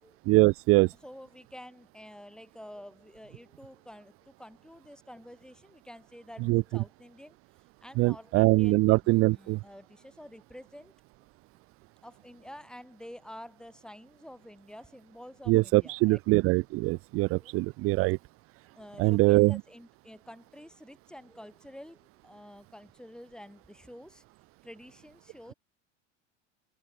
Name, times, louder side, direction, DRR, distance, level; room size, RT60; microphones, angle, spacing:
voice 1, 0.3-0.9 6.5-6.6 8.0-9.6 15.5-18.2 19.0-19.6, right 22 dB, 40° right, 0.6 m, -23 dB
voice 2, 1.0-7.4 7.8-10.9 12.0-16.2 17.4-18.0 18.7-24.2 24.6-25.5, equal, ahead, 4.8 m, -49 dB
figure-of-eight pair, 80°, 37 cm